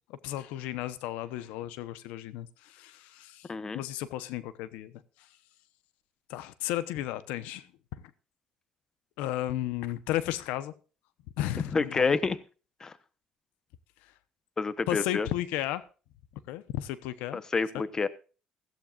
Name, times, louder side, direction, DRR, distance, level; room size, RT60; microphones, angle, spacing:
voice 1, 0.1-3.5 3.7-4.9 6.3-7.7 7.9-8.0 9.2-10.7 11.4-12.2 14.9-15.8 16.5-17.4, left 13 dB, 90° left, 1.0 m, -34 dB
voice 2, 3.5-3.8 11.7-12.4 12.8-12.9 14.6-15.3 17.3-18.1, left 4 dB, 25° left, 1.0 m, -28 dB
16.0 x 15.0 x 2.5 m
cardioid pair, 105°, 2 cm